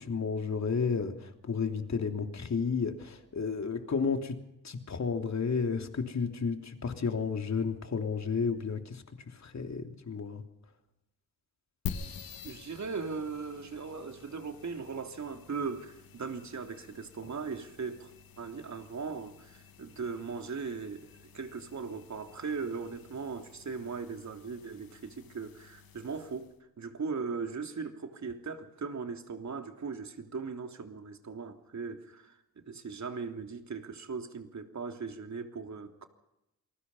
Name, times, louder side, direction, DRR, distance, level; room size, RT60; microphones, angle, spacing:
voice 1, 0.0-4.4 4.6-10.4, left 5 dB, 45° left, 3.2 m, -32 dB
sound 1, 11.9-26.6, left 7 dB, 60° left, 2.7 m, -48 dB
voice 2, 12.4-18.1 18.4-26.5 26.8-36.1, right 5 dB, 45° right, 3.3 m, -39 dB
28.0 x 20.0 x 5.6 m
supercardioid pair, 50°, 39 cm